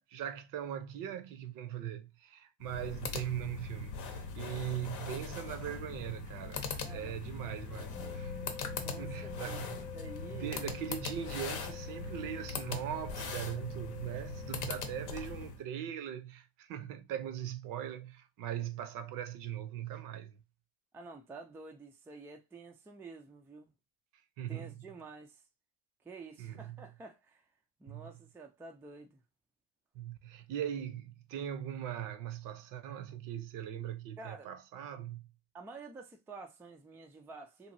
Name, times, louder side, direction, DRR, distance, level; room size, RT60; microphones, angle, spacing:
voice 1, 0.0-8.4 9.0-9.9 10.3-20.4 24.4-24.7 26.4-26.8 27.9-28.1 29.9-35.3, right 10 dB, 55° right, 0.6 m, -40 dB
sound 1, 2.6-15.6, left 4 dB, 55° left, 0.8 m, -41 dB
voice 2, 6.8-8.3 8.8-9.6 9.9-10.5 20.9-23.7 24.5-25.4 26.0-27.4 27.8-29.2 34.2-34.5 35.5-37.7, right 3 dB, 5° right, 0.3 m, -50 dB
sound 2, 7.9-15.3, left 5 dB, 10° left, 0.8 m, -48 dB
3.0 x 2.6 x 2.6 m
cardioid pair, 115°, 38 cm